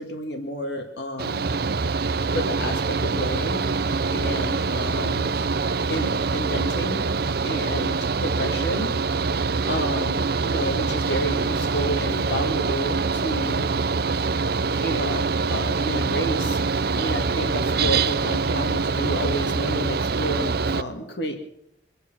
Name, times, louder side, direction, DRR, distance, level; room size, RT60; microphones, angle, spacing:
voice 1, 0.0-1.5 2.3-3.7 4.1-5.3 5.9-7.1 7.5-8.9 9.7-13.8 14.8-16.6 16.9-21.4, equal, 55° left, 5 dB, 2.0 m, -30 dB
Mechanical fan, 1.2-20.8, right 4 dB, 50° right, 0.5 m, -24 dB
25.0 x 9.2 x 6.2 m, 0.77 s
head